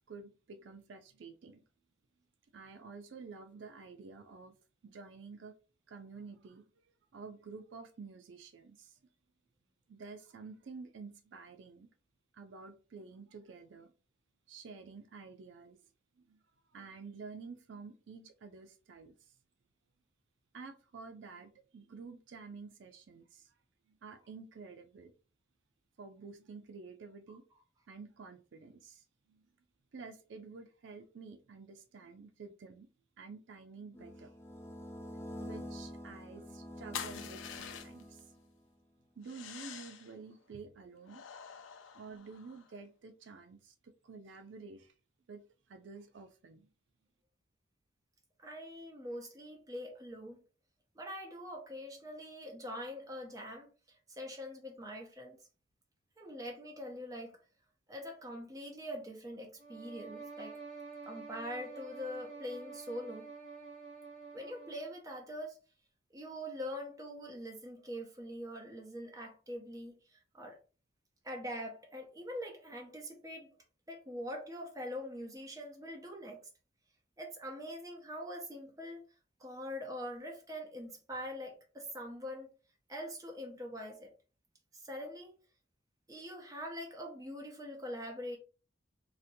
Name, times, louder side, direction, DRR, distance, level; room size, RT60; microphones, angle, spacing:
voice 1, 0.1-1.6 2.5-4.6 4.8-5.5 5.9-6.6 7.1-9.0 9.9-11.9 12.3-13.9 14.5-15.8 16.2-16.4 16.7-19.3 20.5-23.5 23.9-25.1 26.0-27.4 27.9-29.5 29.9-32.9 33.2-34.4 35.4-38.3 39.2-41.2 41.9-44.9 45.3-46.7, right 4 dB, 75° right, 0.4 m, -50 dB
sound 1, 33.9-38.6, equal, 15° left, 0.4 m, -47 dB
sound 2, 36.9-38.2 39.2-40.1 41.1-42.7, left 8 dB, 85° left, 0.4 m, -46 dB
voice 2, 48.4-50.4 50.9-55.4 56.2-57.4 57.9-60.6 61.0-63.3 64.3-65.6 66.1-70.6 71.2-73.5 73.9-76.4 77.2-79.0 79.4-82.5 82.9-84.1 84.7-85.3 86.1-88.4, equal, 20° right, 0.7 m, -43 dB
sound 3, 59.6-65.0, right 4 dB, 40° right, 1.2 m, -48 dB
4.1 x 2.1 x 2.6 m
head